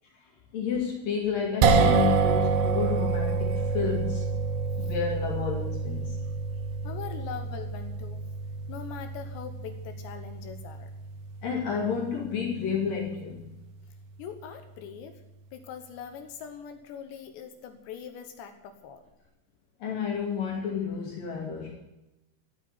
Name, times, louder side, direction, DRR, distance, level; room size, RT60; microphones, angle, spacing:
voice 1, 0.2-4.2 4.8-6.2 11.4-13.5 19.8-21.8, left 6 dB, 50° left, -2 dB, 3.9 m, -31 dB
sound 1, 1.6-13.9, right 4 dB, 75° right, 3.1 m, -28 dB
voice 2, 6.8-8.2 8.7-10.9 14.2-15.2 15.5-19.0, left 7 dB, 70° left, 7 dB, 2.9 m, -42 dB
14.0 x 8.8 x 9.4 m, 0.96 s
omnidirectional pair, 5.9 m